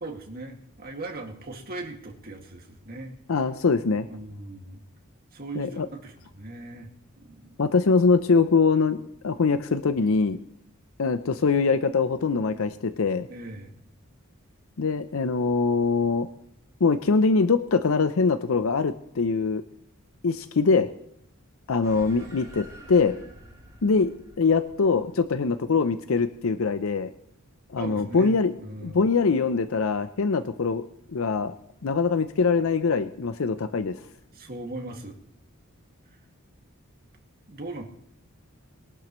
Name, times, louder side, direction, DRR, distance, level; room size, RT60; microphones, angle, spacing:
voice 1, 0.0-3.1 4.1-4.8 5.3-6.9 7.2-7.6 13.3-13.7 27.8-29.1 34.3-35.2 36.1-36.2 37.5-37.9, right 2 dB, 45° right, 2 dB, 2.1 m, -39 dB
voice 2, 3.3-4.1 5.5-5.9 7.6-10.4 11.0-13.3 14.8-16.3 16.8-19.6 20.2-20.9 21.7-23.1 23.8-24.1 24.4-27.1 27.7-28.5 28.8-31.5 31.8-34.0, left 4 dB, 70° left, 11 dB, 0.6 m, -23 dB
Violin Scare, 21.8-26.6, right 1 dB, 15° right, 6.2 m, -48 dB
22.0 x 11.5 x 3.1 m, 0.71 s
head